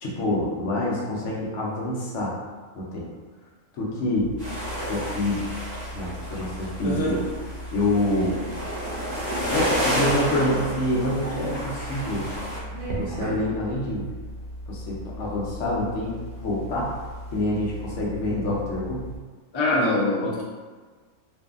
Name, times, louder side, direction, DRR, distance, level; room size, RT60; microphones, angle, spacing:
voice 1, 0.0-2.3 2.7-3.0 3.8-4.3 4.9-5.5 5.9-7.2 7.7-8.4 9.5-12.3 12.9-14.0 14.7-16.1 16.4-16.9 17.3-19.1, left 1 dB, 70° left, -4 dB, 0.9 m, -26 dB
Roll Over in Bed Sequence, 4.1-19.2, right 1 dB, 75° right, 0.9 m, -36 dB
sound 1, 4.4-12.6, equal, 15° right, 1.1 m, -31 dB
voice 2, 6.8-7.2 19.5-20.4, left 2 dB, 50° left, -5 dB, 0.3 m, -23 dB
2.6 x 2.5 x 2.3 m, 1.4 s
omnidirectional pair, 1.4 m